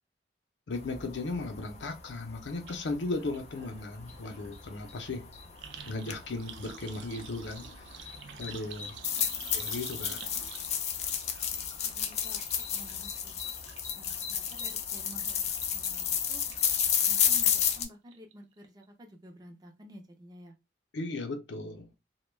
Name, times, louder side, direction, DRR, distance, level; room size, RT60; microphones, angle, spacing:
voice 1, 0.7-5.3 5.9-8.1 8.4-8.9 9.5-10.2 20.9-21.9, left 2 dB, 85° left, 0.6 m, -36 dB
sound 1, 0.7-17.8, left 8 dB, 35° left, 0.3 m, -33 dB
sound 2, 2.7-2.8 3.1-17.7 18.1-18.6 18.8-18.9, right 8 dB, 75° right, 0.4 m, -50 dB
voice 2, 8.3-8.7 10.3-10.5 11.5-12.4 12.7-13.3 14.0-16.4 17.1-20.5, equal, 20° right, 0.5 m, -52 dB
2.2 x 2.1 x 3.1 m
head